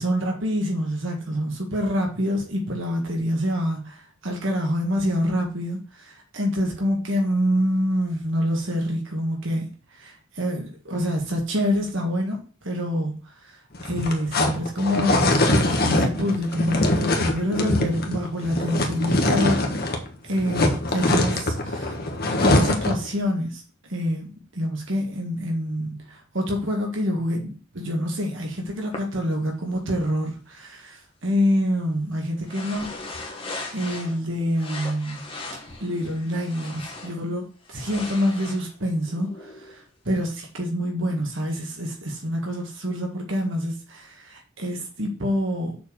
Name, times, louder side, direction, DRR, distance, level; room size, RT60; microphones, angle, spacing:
voice 1, 0.0-6.0 6.3-13.6 13.8-19.8 20.2-21.9 22.4-23.6 23.9-32.9 33.7-35.2 35.8-45.8, equal, 60° right, 1.8 m, -26 dB
sound 1, 13.7-20.1 20.3-23.1, left 2 dB, 45° left, 1.3 m, -23 dB
sound 2, 28.9-29.0 32.5-34.2 34.5-37.2 37.6-39.8, left 2 dB, 25° left, 1.4 m, -38 dB
6.9 x 4.5 x 6.3 m
head